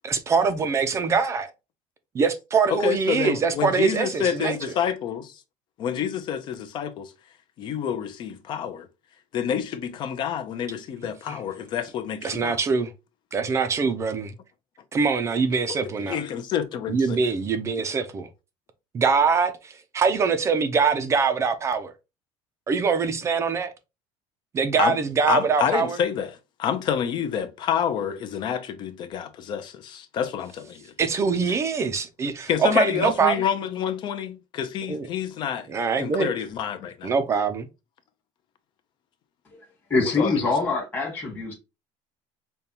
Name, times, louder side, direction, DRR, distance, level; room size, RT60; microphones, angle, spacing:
voice 1, 0.0-1.5 2.1-4.7 11.3-11.4 12.2-12.9 13.3-14.3 14.9-16.2 16.9-18.3 18.9-21.9 22.7-23.7 24.5-26.0 31.0-33.4 34.9-35.1 35.7-36.3 37.0-37.7, right 5 dB, 25° right, 0.4 m, -23 dB
voice 2, 2.7-5.3 5.8-7.1 7.6-8.9 9.3-12.6 16.1-17.3 24.8-25.0 25.3-26.3 26.6-30.9 32.5-35.7 36.0-37.1 40.2-40.3, left 8 dB, 40° left, 0.5 m, -28 dB
voice 3, 39.9-41.5, left 3 dB, 15° left, 1.3 m, -24 dB
5.2 x 2.2 x 2.8 m
cardioid pair, 160°, 12 cm